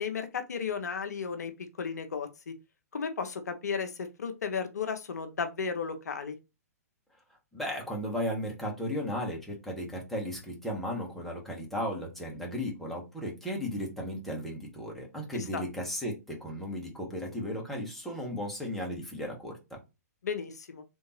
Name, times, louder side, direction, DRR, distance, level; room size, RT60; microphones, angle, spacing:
voice 1, 0.0-1.5 1.8-2.5 2.9-3.9 4.2-6.4 15.3-15.6 20.2-20.8, left 6 dB, 75° left, 0.6 m, -34 dB
voice 2, 7.5-19.8, equal, ahead, 1.2 m, -35 dB
3.5 x 2.7 x 3.0 m
figure-of-eight pair, 115°, 9 cm